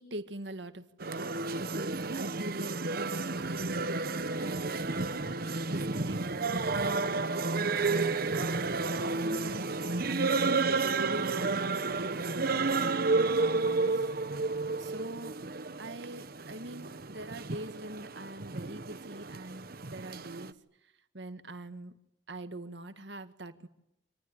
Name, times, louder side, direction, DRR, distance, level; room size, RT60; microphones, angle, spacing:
voice 1, 0.0-4.0 4.4-11.7 12.0-14.0 14.8-15.4 15.8-20.5 21.1-21.9 22.3-23.7, right 1 dB, 75° right, 9 dB, 1.8 m, -43 dB
sound 1, 1.0-20.5, right 3 dB, 55° right, 1.2 m, -31 dB
27.0 x 20.0 x 9.9 m, 0.84 s
head